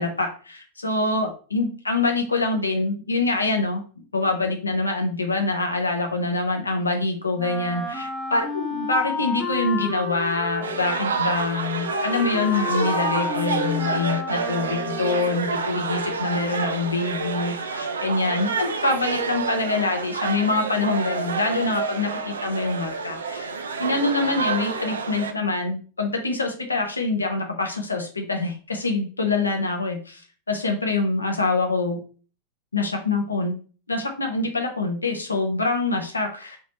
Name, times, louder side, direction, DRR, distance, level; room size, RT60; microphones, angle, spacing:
voice 1, 0.0-3.8 4.1-23.5 23.8-30.2 30.5-32.0 32.7-33.6 33.9-36.6, left 3 dB, 80° left, 3 dB, 0.8 m, -25 dB
Wind instrument woodwind instrument, 7.4-15.5, left 3 dB, 5° left, 1.1 m, -31 dB
sound 1, 10.6-25.3, right 4 dB, 70° right, 0.5 m, -28 dB
3.5 x 3.0 x 4.2 m, 0.39 s
figure-of-eight pair, 90°, 0 cm